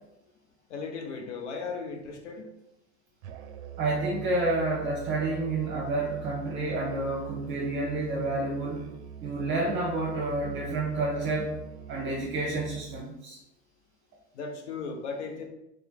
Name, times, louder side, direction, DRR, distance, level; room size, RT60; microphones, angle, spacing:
voice 1, 0.7-2.5 14.3-15.4, left 4 dB, 80° left, 2 dB, 0.9 m, -36 dB
Musical instrument, 3.2-13.1, right 9 dB, 70° right, 0.5 m, -43 dB
voice 2, 3.8-8.9 9.2-11.6 11.9-13.4, right 2 dB, 35° right, -4 dB, 0.9 m, -29 dB
3.4 x 2.9 x 3.6 m, 0.87 s
hypercardioid pair, 105°, 35 cm